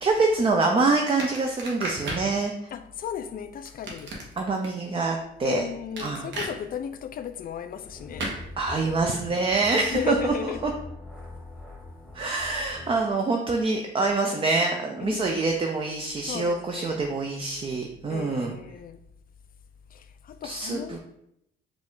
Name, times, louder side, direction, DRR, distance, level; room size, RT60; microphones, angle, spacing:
voice 1, 0.0-2.5 4.4-5.6 6.0-6.3 8.6-10.7 12.1-18.5 20.4-21.0, right 3 dB, 30° right, 0.5 m, -25 dB
sound 1, 1.2-2.3 3.7-4.7 6.0-6.5 8.2-8.4, right 2 dB, 70° right, 1.1 m, -33 dB
voice 2, 2.7-4.2 5.4-8.3 9.7-10.6 15.0-15.6 16.3-17.0 18.1-19.0 19.9-21.0, left 8 dB, 45° left, 0.4 m, -35 dB
sound 2, 7.8-13.0, left 2 dB, ahead, 1.0 m, -43 dB
4.8 x 2.4 x 3.6 m
cardioid pair, 90°, 20 cm